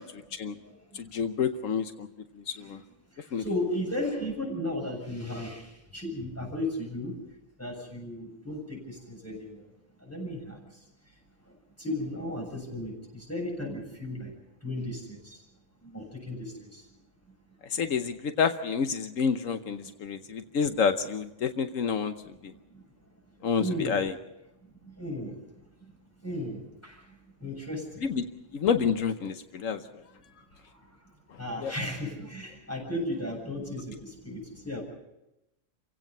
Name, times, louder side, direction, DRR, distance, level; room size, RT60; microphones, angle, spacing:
voice 1, 0.0-0.4 0.6-1.0 2.5-2.7 3.1-7.2 7.6-9.7 10.0-10.8 11.4-14.3 14.6-15.4 15.8-16.9 19.8-19.9 22.5-22.8 23.4-24.0 24.8-25.4 25.8-25.9 26.2-28.1 30.3-31.1 31.4-34.9, left 1 dB, 10° left, -1 dB, 7.2 m, -36 dB
voice 2, 0.9-2.1 2.5-2.8 3.3-3.4 17.7-22.1 22.4-22.5 23.4-24.1 28.0-28.2 28.5-29.8 31.6-31.7, left 6 dB, 85° left, 8 dB, 1.3 m, -28 dB
29.5 x 16.5 x 5.5 m, 0.89 s
omnidirectional pair, 1.3 m